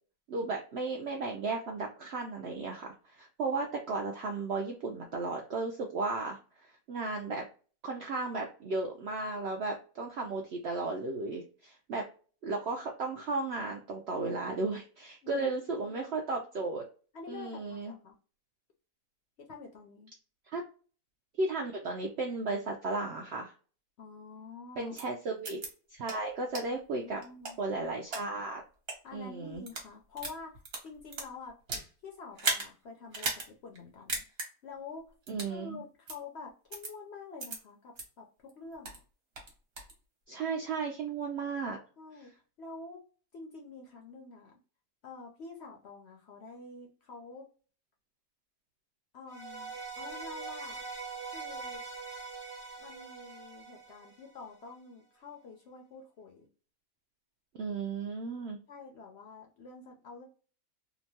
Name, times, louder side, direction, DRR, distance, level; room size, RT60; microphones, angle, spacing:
voice 1, 0.3-7.4 7.8-12.0 12.4-16.8 17.3-17.9 20.5-20.6 21.4-23.5 24.8-25.6 25.9-27.2 27.6-28.6 29.1-29.6 35.3-35.8 40.3-41.8 57.5-58.6, right 3 dB, 70° right, 1 dB, 0.6 m, -35 dB
voice 2, 15.2-16.1 17.1-18.1 19.4-20.1 24.0-25.0 26.7-27.6 29.0-31.6 32.0-34.2 34.6-35.0 35.4-39.0 42.0-43.0 43.3-44.6 45.0-47.5 49.1-50.8 51.3-51.8 52.8-56.5 58.7-60.3, left 4 dB, 60° left, 1 dB, 0.7 m, -48 dB
sound 1, 25.0-25.1 25.4-25.7 26.1-26.2 26.5-26.6 27.2-28.2 28.8-29.0 29.5-29.9 30.2-31.9 32.4-32.7 33.1-33.5 33.8-33.9 34.1-34.5 35.3-35.5 36.1-36.2 36.7-36.9 37.4-37.6 38.0-38.1 38.5-39.0 39.4-39.9, right 3 dB, 50° right, 1.0 m, -35 dB
sound 2, 49.3-54.5, right 4 dB, 25° right, 0.9 m, -43 dB
2.9 x 2.2 x 2.7 m, 0.38 s
omnidirectional pair, 1.6 m